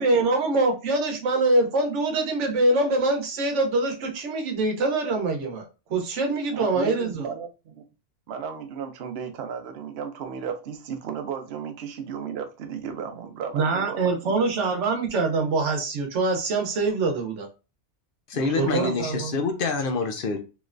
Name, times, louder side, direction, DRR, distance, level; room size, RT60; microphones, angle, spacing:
voice 1, 0.0-7.3 13.5-17.5 18.6-19.3, right 2 dB, 85° right, 1.1 m, -24 dB
voice 2, 6.5-7.8 8.3-14.5 18.3-19.0, right 7 dB, 65° right, 0.8 m, -34 dB
voice 3, 18.3-20.4, left 4 dB, 60° left, 0.7 m, -26 dB
3.1 x 3.0 x 2.5 m
omnidirectional pair, 1.2 m